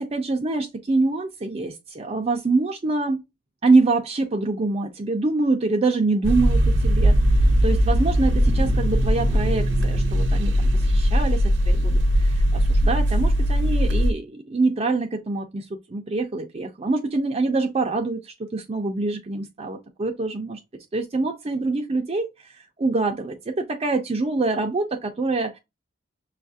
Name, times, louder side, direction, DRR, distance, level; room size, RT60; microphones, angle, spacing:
voice 1, 0.0-3.2 3.6-7.2 7.6-20.6 20.9-22.3 22.5-25.6, right 3 dB, 30° right, 0.4 m, -25 dB
sound 1, 6.2-14.1, equal, 70° right, 0.7 m, -19 dB
6.1 x 2.4 x 2.5 m
head